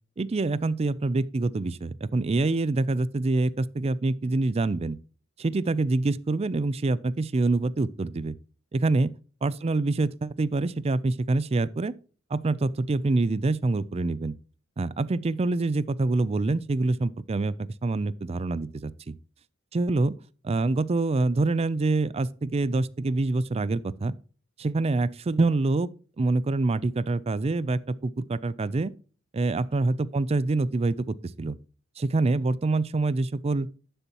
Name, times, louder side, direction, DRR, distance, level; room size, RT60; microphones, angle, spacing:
voice 1, 0.2-5.0 5.4-8.3 8.7-9.1 9.4-11.9 12.3-14.3 14.8-19.1 19.7-20.2 20.4-24.1 24.6-25.9 26.2-28.9 29.3-31.6 32.0-33.7, right 2 dB, 30° right, 0.4 m, -26 dB
11.5 x 6.8 x 2.9 m
head